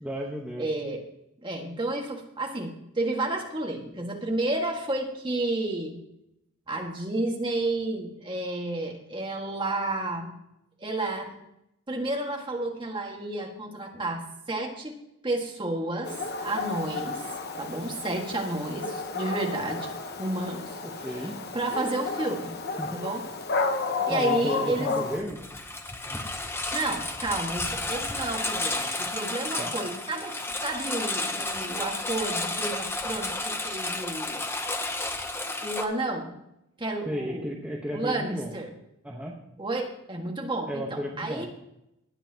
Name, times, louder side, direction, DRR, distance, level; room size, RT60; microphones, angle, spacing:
voice 1, 0.0-0.7 21.0-21.4 22.8-23.0 24.1-25.4 26.1-26.4 29.6-29.7 37.1-38.5 39.0-39.4 40.7-41.5, equal, 5° right, -2 dB, 1.1 m, -33 dB
voice 2, 0.6-1.0 1.4-6.0 6.7-10.3 10.8-11.4 11.9-14.2 14.5-15.0 15.2-19.9 20.2-21.3 21.5-22.6 22.9-23.2 24.1-25.0 26.7-30.4 30.6-34.4 35.6-36.4 36.8-37.5 37.9-38.7 39.6-41.5, right 2 dB, 20° right, 1 dB, 1.7 m, -31 dB
Dog, 16.0-25.2, left 4 dB, 45° left, 1.0 m, -32 dB
Engine, 25.2-35.8, left 2 dB, 10° left, 0.7 m, -32 dB
19.5 x 8.4 x 2.9 m, 0.82 s
head